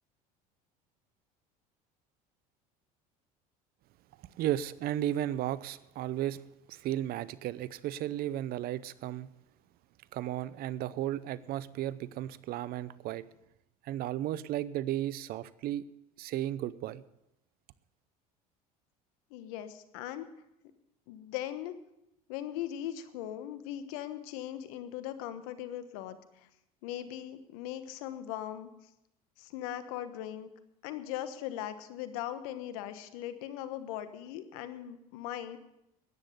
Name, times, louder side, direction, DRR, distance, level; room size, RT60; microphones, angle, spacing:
voice 1, 4.4-6.4 6.7-9.3 10.1-13.2 13.8-15.9 16.2-17.0, right 13 dB, 55° right, 18 dB, 0.7 m, -34 dB
voice 2, 19.3-20.3 21.1-21.7 22.3-26.5 26.8-28.7 29.4-30.5 30.8-35.6, left 11 dB, 75° left, 11 dB, 1.2 m, -39 dB
13.5 x 9.8 x 6.6 m, 0.86 s
hypercardioid pair, 80°, 18 cm